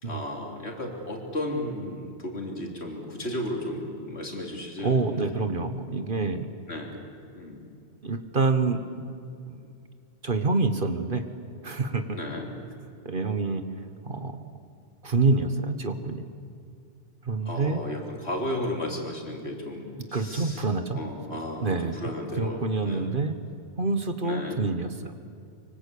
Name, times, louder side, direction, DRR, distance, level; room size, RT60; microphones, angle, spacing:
voice 1, 0.0-5.4 6.7-6.9 7.4-7.6 12.1-12.5 17.5-20.6 21.0-23.2 24.2-24.6, left 1 dB, 65° left, 1 dB, 3.9 m, -34 dB
voice 2, 4.8-6.5 8.0-8.8 9.5-9.7 10.2-11.2 11.6-12.2 13.0-13.6 14.0-14.4 15.0-16.3 17.2-17.8 20.1-21.0 21.6-22.0 22.4-23.3 23.8-25.2, right 3 dB, 50° right, 8 dB, 1.5 m, -27 dB
25.0 x 24.0 x 8.5 m, 2.4 s
omnidirectional pair, 1.2 m